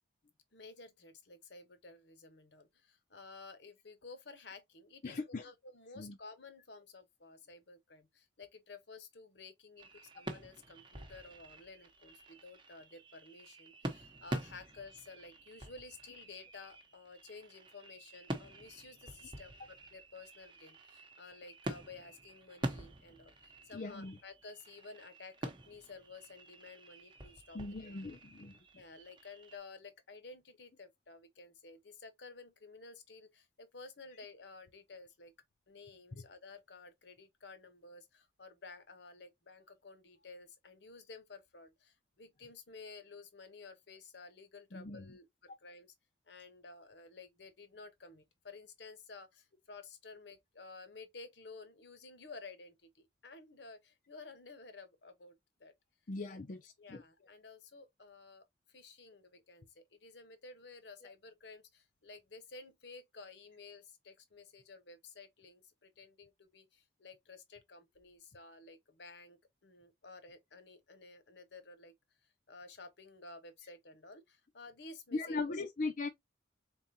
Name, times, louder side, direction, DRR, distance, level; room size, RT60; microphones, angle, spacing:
voice 1, 0.5-27.9 28.7-35.3 35.7-45.9 46.3-55.7 56.3-56.4 56.8-71.9 72.5-75.6, left 3 dB, 70° left, 1.0 m, -53 dB
voice 2, 5.0-5.5 6.0-6.2 23.7-24.2 27.5-28.5 36.1-36.2 44.7-45.1 56.1-57.0 75.1-76.1, left 3 dB, 45° left, 0.6 m, -39 dB
sound 1, 9.8-29.6, right 1 dB, 25° right, 0.9 m, -47 dB
4.0 x 3.6 x 2.7 m
head